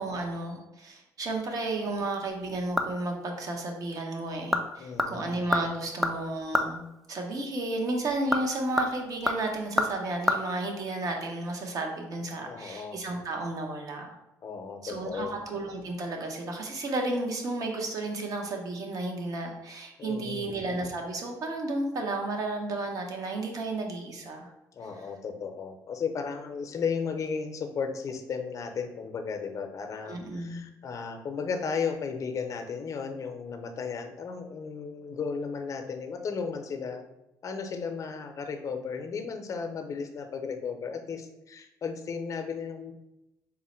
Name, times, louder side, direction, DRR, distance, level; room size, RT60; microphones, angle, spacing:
voice 1, 0.0-6.8 7.1-14.1 14.8-24.5 30.0-30.6, right 2 dB, 55° right, 2 dB, 0.9 m, -33 dB
sound 1, 2.3-3.2 3.5-3.6 4.2-4.7 5.0-6.8 8.0-10.4 10.7-10.8, left 1 dB, ahead, 0.4 m, -29 dB
voice 2, 4.8-5.4 12.5-13.0 14.4-15.4 20.0-20.5 24.7-37.0 37.4-42.9, left 5 dB, 50° left, 6 dB, 0.6 m, -35 dB
3.8 x 2.1 x 4.3 m, 0.92 s
supercardioid pair, 80°, 7 cm